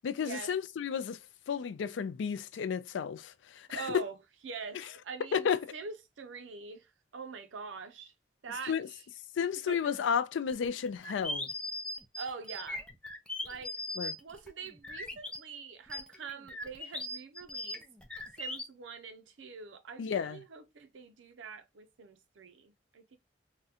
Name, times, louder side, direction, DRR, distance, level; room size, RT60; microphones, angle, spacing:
voice 1, 0.0-1.2 1.5-3.9 5.3-5.7 8.7-8.9 9.4-11.5 14.0-14.1 20.0-20.4, left 7 dB, 80° left, 0.3 m, -32 dB
voice 2, 3.7-4.2 4.4-8.1 8.4-9.0 9.7-9.9 12.2-12.8 13.4-17.8 18.4-23.2, right 5 dB, 85° right, 0.5 m, -44 dB
sound 1, 10.5-15.4 15.9-18.6, left 1 dB, 5° left, 0.4 m, -39 dB
3.7 x 2.1 x 2.7 m
head